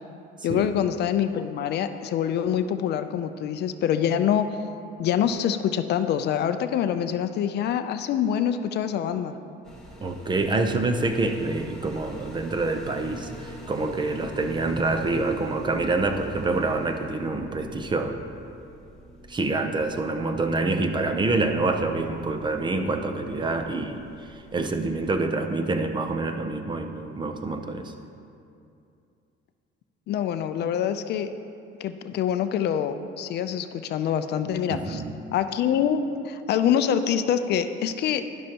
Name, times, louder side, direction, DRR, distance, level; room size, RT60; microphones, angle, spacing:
voice 1, 0.4-4.6 5.0-9.4 30.1-31.3 31.8-35.0 35.3-38.2, left 9 dB, 55° left, 9 dB, 0.5 m, -25 dB
sound 1, 9.6-25.2, equal, 5° left, 1.3 m, -45 dB
voice 2, 10.0-18.2 19.3-27.9 34.7-35.1, right 3 dB, 20° right, 6 dB, 0.6 m, -26 dB
11.5 x 11.0 x 2.9 m, 2.6 s
cardioid pair, 150°, 21 cm